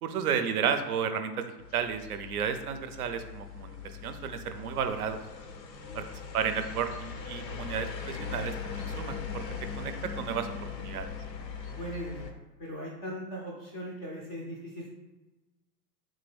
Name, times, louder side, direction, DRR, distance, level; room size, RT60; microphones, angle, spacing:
voice 1, 0.0-3.8 4.0-5.2 5.9-6.0 6.3-9.4 9.8-10.5 10.8-11.1, right 7 dB, 65° right, 9 dB, 0.5 m, -32 dB
sound 1, 1.6-12.3, left 6 dB, 85° left, 0.6 m, -40 dB
voice 2, 5.7-6.2 11.7-14.9, equal, 20° left, -4 dB, 0.3 m, -40 dB
3.7 x 2.6 x 3.3 m, 1.1 s
figure-of-eight pair, 95°, 49 cm